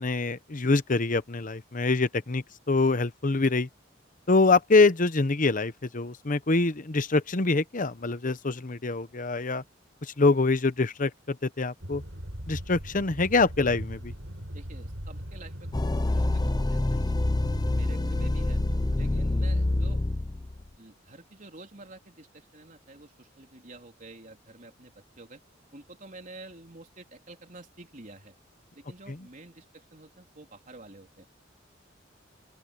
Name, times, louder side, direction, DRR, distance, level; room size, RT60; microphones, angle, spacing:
voice 1, 0.0-3.7 4.3-9.6 10.0-12.0 12.5-14.1 29.1-29.2, left 3 dB, 45° left, 1.0 m, -25 dB
sound 1, 11.8-20.0, equal, 80° right, 6.8 m, -40 dB
voice 2, 14.5-15.7 16.0-17.2 17.7-18.6 19.0-20.0 20.8-25.4 25.7-28.3 28.8-31.3, right 2 dB, 45° right, 3.7 m, -49 dB
sound 2, 15.7-20.7, left 2 dB, 20° left, 0.5 m, -26 dB
open air
head